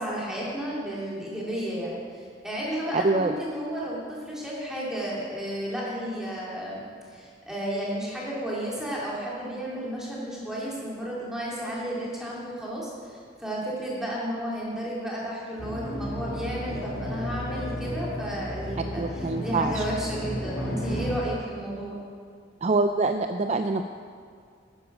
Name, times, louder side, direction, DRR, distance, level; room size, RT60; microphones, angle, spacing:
voice 1, 0.0-22.0, right 1 dB, 5° right, -6 dB, 2.8 m, -33 dB
sound 1, 15.6-21.1, equal, 50° left, 2.3 m, -33 dB
voice 2, 19.0-19.8 22.6-23.8, right 3 dB, 35° right, 7 dB, 0.4 m, -25 dB
10.5 x 9.9 x 6.1 m, 2.1 s
head